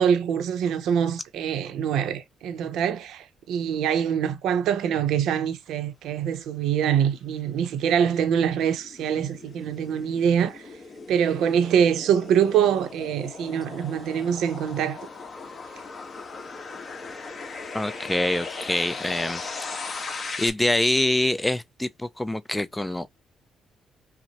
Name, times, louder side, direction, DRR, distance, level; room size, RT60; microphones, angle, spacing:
voice 1, 0.0-10.6 11.1-15.0, right 8 dB, 85° right, 0.7 m, -24 dB
sound 1, 7.3-20.5, left 4 dB, 40° left, 1.1 m, -38 dB
voice 2, 17.7-20.1 20.4-23.1, left 1 dB, 10° left, 0.3 m, -26 dB
5.8 x 2.1 x 2.8 m
cardioid pair, 90°, 0 cm